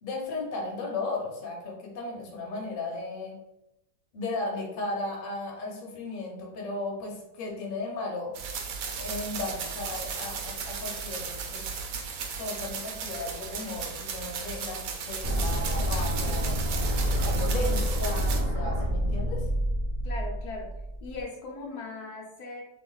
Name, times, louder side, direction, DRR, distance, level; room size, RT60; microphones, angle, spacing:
voice 1, 0.0-3.3 4.1-8.3 9.0-11.8 12.3-16.7 17.0-19.5, left 2 dB, 40° left, -1 dB, 0.9 m, -35 dB
Shaking Tree Branch, 8.3-18.4, right 6 dB, 65° right, 0.9 m, -36 dB
sound 1, 15.2-21.2, equal, 50° right, 0.5 m, -28 dB
voice 2, 20.0-20.7 21.0-22.6, left 3 dB, 70° left, -1 dB, 1.1 m, -38 dB
3.3 x 3.0 x 3.9 m, 0.89 s
omnidirectional pair, 1.8 m